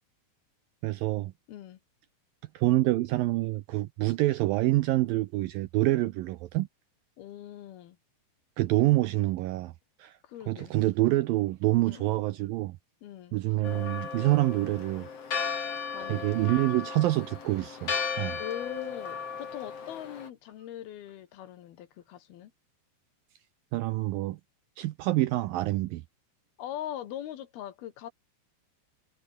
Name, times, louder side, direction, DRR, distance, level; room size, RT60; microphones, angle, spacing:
voice 1, 0.8-1.3 2.5-6.7 8.6-9.7 10.0-10.2 10.5-12.8 13.3-15.1 16.1-18.4 23.7-24.4 24.8-26.0, right 17 dB, 90° right, 2.0 m, -26 dB
voice 2, 1.5-1.8 7.2-8.0 10.2-10.7 11.9-12.2 13.0-13.3 15.9-16.7 18.4-22.5 26.6-28.1, left 11 dB, 70° left, 3.2 m, -41 dB
Church bell, 13.6-20.3, left 6 dB, 40° left, 3.6 m, -35 dB
omnidirectional pair, 4.9 m